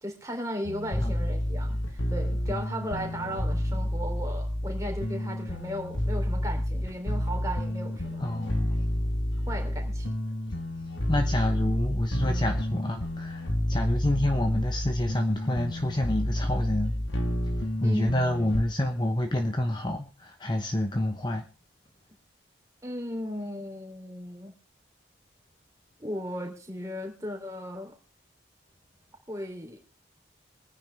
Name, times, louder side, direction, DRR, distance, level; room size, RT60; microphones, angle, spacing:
voice 1, 0.0-8.3 9.5-10.1 17.8-18.2 22.8-24.5 26.0-28.0 29.3-29.8, equal, 15° right, 3.5 m, -36 dB
sound 1, 0.6-18.6, left 1 dB, 80° left, 1.7 m, -30 dB
voice 2, 8.2-8.8 11.1-16.9 17.8-21.4, left 1 dB, 25° left, 1.0 m, -28 dB
24.5 x 9.9 x 3.6 m
head